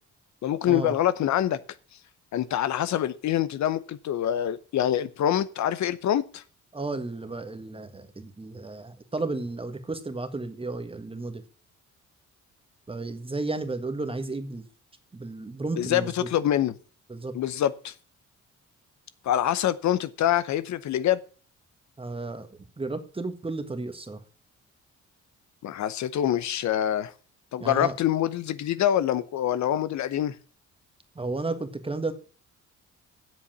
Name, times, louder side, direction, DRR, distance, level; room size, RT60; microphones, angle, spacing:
voice 1, 0.4-1.6 2.3-6.4 15.8-16.7 17.3-17.9 19.2-21.2 25.6-27.1 27.5-30.3, left 11 dB, 65° left, 0.8 m, -25 dB
voice 2, 6.7-11.4 12.9-14.6 15.1-16.3 17.1-17.4 22.0-24.2 27.6-27.9 31.1-32.1, right 3 dB, 20° right, 1.5 m, -33 dB
7.9 x 7.0 x 7.3 m
cardioid pair, 90°, 30 cm